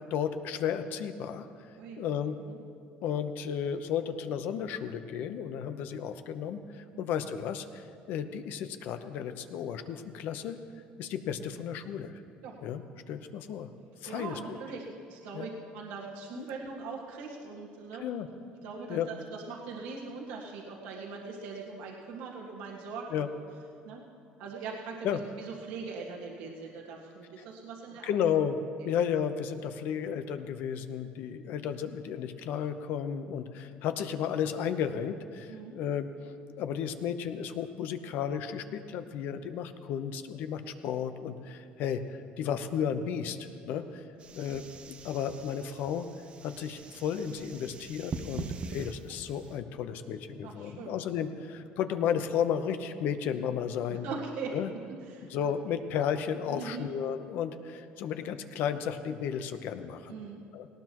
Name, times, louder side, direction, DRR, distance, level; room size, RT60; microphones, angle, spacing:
voice 1, 0.0-1.5 2.0-2.4 3.0-10.6 11.0-12.2 12.6-12.8 13.1-13.7 14.0-14.4 15.3-15.5 16.4-16.5 18.0-18.3 18.9-19.1 23.1-23.3 25.0-25.2 27.4-27.5 28.0-28.6 28.8-36.1 36.6-44.0 44.3-46.1 46.4-54.0 54.5-54.7 55.3-60.2 60.5-60.7, left 8 dB, 65° left, 9 dB, 0.8 m, -33 dB
voice 2, 14.1-18.0 18.6-23.3 23.8-24.0 24.4-28.1 35.5-35.8 44.5-44.6 48.3-48.6 50.4-51.0 53.9-54.5 55.1-55.8 56.5-56.9 60.1-60.4, right 4 dB, 85° right, -2 dB, 1.8 m, -41 dB
sound 1, 44.2-49.6, right 4 dB, 35° right, 0.8 m, -43 dB
18.5 x 18.5 x 3.0 m, 2.4 s
cardioid pair, 120°, 3 cm